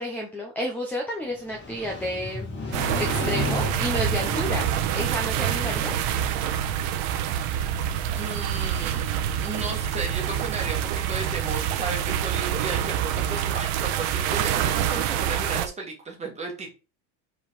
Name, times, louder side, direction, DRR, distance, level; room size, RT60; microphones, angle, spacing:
voice 1, 0.0-2.5 3.0-5.9, equal, 5° left, 1 dB, 0.8 m, -31 dB
Motorcycle, 1.3-7.3, left 2 dB, 25° left, 2.3 m, -34 dB
sound 1, 2.7-15.7, right 10 dB, 80° right, 1.2 m, -26 dB
voice 2, 8.1-9.1 9.4-16.7, right 3 dB, 15° right, 1 dB, 1.9 m, -34 dB
5.4 x 4.2 x 5.4 m, 0.31 s
cardioid pair, 170°, 44 cm